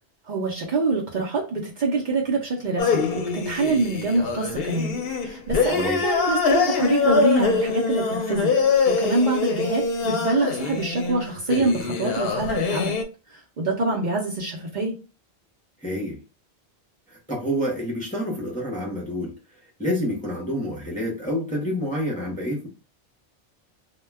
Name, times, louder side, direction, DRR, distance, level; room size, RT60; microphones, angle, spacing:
voice 1, 0.3-8.5 8.9-12.9 13.3-14.9, right 3 dB, 55° right, -2 dB, 0.7 m, -25 dB
sound 1, 2.8-13.0, left 4 dB, 70° left, 0.7 m, -24 dB
voice 2, 15.8-16.2 17.1-19.3 19.8-22.7, equal, 10° left, -3 dB, 0.6 m, -28 dB
2.2 x 2.2 x 3.2 m, 0.33 s
omnidirectional pair, 1.1 m